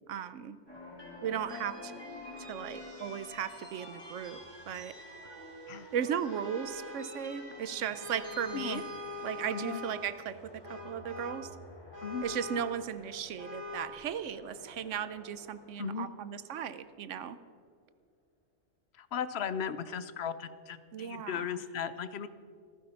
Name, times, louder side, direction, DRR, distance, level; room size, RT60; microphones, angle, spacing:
voice 1, 0.1-0.6 1.2-1.9 2.5-4.9 5.9-8.8 9.2-10.3 10.7-11.5 12.2-17.4 20.9-21.6, right 8 dB, 85° right, 13 dB, 1.1 m, -36 dB
sound 1, 0.7-16.9, left 1 dB, 20° left, 3.5 m, -49 dB
Vehicle horn car horn honking, 6.3-7.1 7.9-10.1 10.6-11.5 11.9-12.8 13.4-14.0, left 1 dB, 35° right, 3.7 m, -43 dB
voice 2, 9.5-9.8 12.0-12.3 15.8-16.1 19.0-22.3, left 7 dB, 65° left, 13 dB, 1.0 m, -36 dB
14.5 x 14.5 x 5.6 m, 2.2 s
omnidirectional pair, 1.2 m